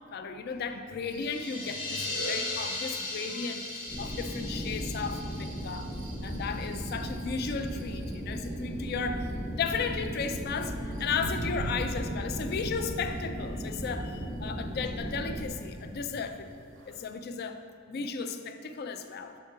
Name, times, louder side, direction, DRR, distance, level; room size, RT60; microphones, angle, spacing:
voice 1, 0.1-5.9 6.2-16.5 16.9-19.4, left 5 dB, 55° left, 8 dB, 0.4 m, -35 dB
sound 1, 1.0-17.1, right 1 dB, 70° right, 0.5 m, -45 dB
sound 2, 1.1-6.7, left 2 dB, 80° left, 1.1 m, -37 dB
sound 3, 3.9-15.5, equal, 30° left, 0.8 m, -36 dB
6.8 x 3.7 x 4.7 m, 2.5 s
head